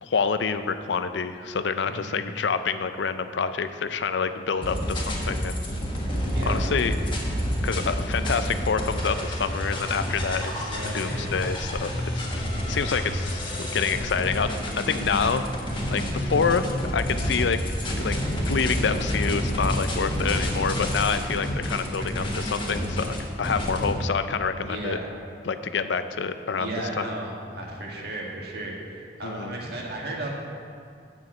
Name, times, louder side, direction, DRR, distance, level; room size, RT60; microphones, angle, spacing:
voice 1, 0.0-5.6 6.5-6.9 7.2-7.3 7.6-15.4 15.9-17.6 17.9-18.2 18.5-25.0 25.5-27.1 29.2-29.6, left 5 dB, 80° left, 11 dB, 0.5 m, -27 dB
voice 2, 1.8-2.2 6.3-6.7 10.6-11.3 16.5-16.7 21.9-22.3 24.6-25.1 26.5-30.3, right 1 dB, 60° right, -2 dB, 1.7 m, -35 dB
sound 1, 4.6-23.9, equal, 30° left, 1.5 m, -28 dB
7.2 x 6.3 x 7.7 m, 2.3 s
head